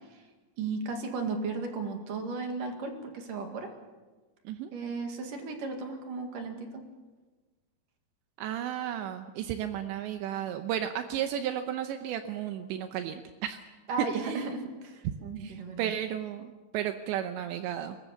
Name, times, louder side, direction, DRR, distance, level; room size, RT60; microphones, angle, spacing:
voice 1, 0.6-3.7 4.7-6.8 13.9-16.0, right 4 dB, 55° right, 4 dB, 3.2 m, -35 dB
voice 2, 8.4-13.6 14.0-14.5 15.4-18.0, right 10 dB, 80° right, 8 dB, 3.0 m, -33 dB
21.5 x 20.5 x 7.0 m, 1.3 s
omnidirectional pair, 5.3 m